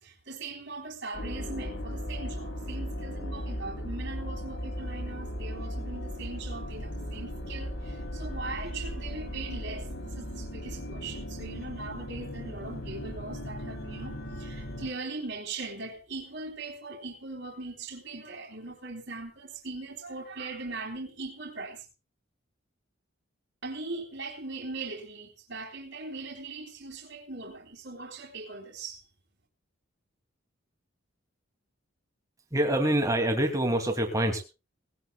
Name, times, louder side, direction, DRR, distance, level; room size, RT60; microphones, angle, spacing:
voice 1, 0.0-21.9 23.6-29.0, right 3 dB, 55° right, 3.2 m, -40 dB
sound 1, 1.1-14.9, equal, 75° left, 2.9 m, -37 dB
voice 2, 32.5-34.4, right 1 dB, 15° right, 2.6 m, -25 dB
19.5 x 17.0 x 2.3 m
head